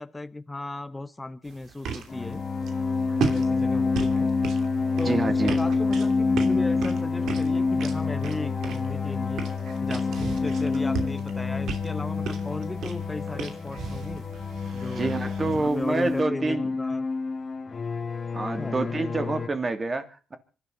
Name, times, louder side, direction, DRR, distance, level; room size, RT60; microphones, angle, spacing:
voice 1, 0.0-2.4 3.2-4.3 5.0-9.5 9.8-14.2 14.7-15.1 15.4-17.1 18.6-19.0, left 2 dB, 15° left, 11 dB, 1.1 m, -36 dB
sound 1, 1.4-16.2, right 6 dB, 75° right, 2.8 m, -37 dB
sound 2, 2.1-19.5, left 4 dB, 40° left, 2.0 m, -27 dB
voice 2, 5.1-5.6 15.0-16.7 18.3-20.4, right 3 dB, 30° right, 9 dB, 2.6 m, -27 dB
26.0 x 12.5 x 4.0 m, 0.36 s
cardioid pair, 90°, 0 cm